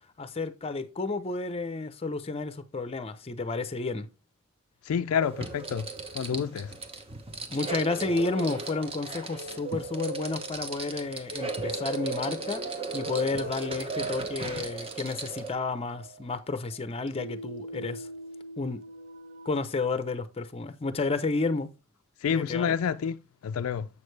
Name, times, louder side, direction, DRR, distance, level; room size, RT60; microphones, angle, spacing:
voice 1, 0.2-4.1 7.5-12.6 12.9-18.1 18.6-18.8 19.5-21.7 22.3-22.8, left 3 dB, 25° left, 0.6 m, -31 dB
voice 2, 4.9-5.9 6.1-6.7 22.2-23.9, left 7 dB, 70° left, 0.3 m, -28 dB
sound 1, 5.2-15.5, right 3 dB, 25° right, 0.9 m, -37 dB
sound 2, 7.6-19.6, right 3 dB, 60° right, 0.9 m, -42 dB
7.1 x 6.4 x 3.2 m
head